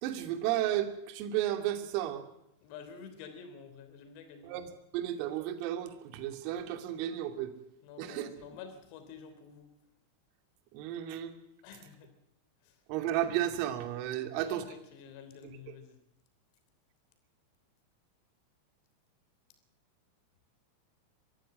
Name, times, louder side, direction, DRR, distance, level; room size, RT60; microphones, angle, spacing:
voice 1, 0.0-2.2 4.4-7.5 8.0-8.3 10.7-11.4 12.9-14.6 15.4-15.6, right 12 dB, 45° right, 7 dB, 2.5 m, -33 dB
voice 2, 2.6-4.5 7.8-9.7 11.6-12.1 12.6-12.8 14.2-16.0, left 6 dB, 45° left, 9 dB, 3.1 m, -49 dB
23.0 x 15.5 x 7.8 m, 0.82 s
figure-of-eight pair, 90°, 0 cm